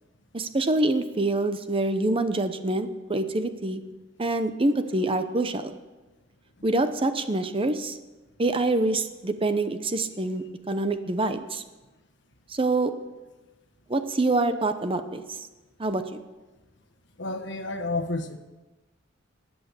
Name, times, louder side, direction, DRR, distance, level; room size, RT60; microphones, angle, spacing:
voice 1, 0.3-3.8 4.2-5.7 6.6-8.0 8.4-11.6 12.5-12.9 13.9-15.2 15.8-16.2, right 2 dB, 30° right, 10 dB, 0.8 m, -26 dB
voice 2, 17.2-18.4, left 2 dB, 65° left, 8 dB, 1.3 m, -30 dB
13.5 x 8.9 x 8.2 m, 1.2 s
head